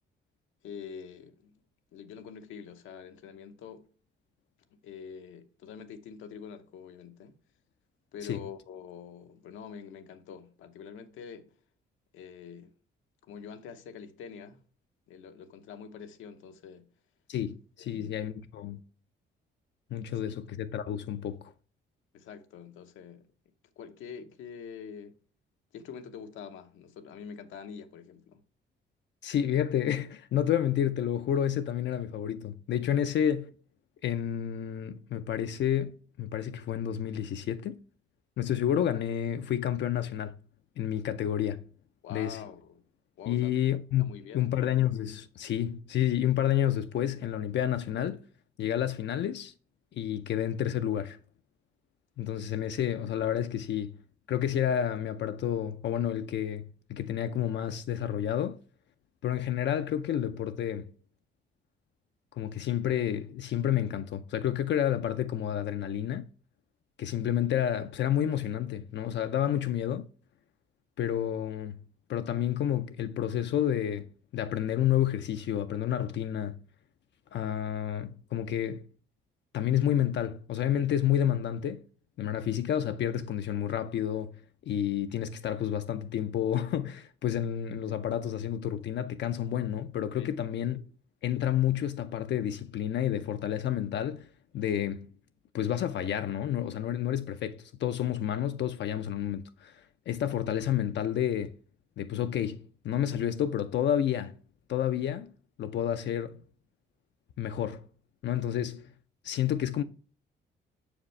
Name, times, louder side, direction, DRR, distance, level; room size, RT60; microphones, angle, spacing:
voice 1, 0.6-1.5 1.9-3.9 4.7-7.4 8.1-11.5 12.1-12.7 13.2-14.6 15.1-16.9 17.8-18.1 20.3-20.4 22.1-23.3 23.8-25.2 25.7-28.4 42.0-42.8 43.2-43.6 44.0-44.5 90.2-90.3, left 7 dB, 85° left, 0.8 m, -45 dB
voice 2, 17.3-18.8 19.9-21.5 29.2-33.5 34.0-37.8 38.4-40.4 40.8-41.7 42.1-42.4 43.3-48.2 48.6-49.5 49.9-51.2 52.2-54.0 54.3-58.6 59.2-60.9 62.3-66.3 67.0-70.1 71.0-71.8 72.1-76.6 77.3-78.9 79.5-81.8 82.2-84.4 84.7-90.8 91.2-94.3 94.5-95.1 95.5-101.6 102.0-104.3 104.7-105.3 105.6-106.4 107.4-107.9 108.2-108.9 109.2-109.8, left 10 dB, 65° left, 0.5 m, -30 dB
6.3 x 4.9 x 3.2 m
cardioid pair, 90°, 20 cm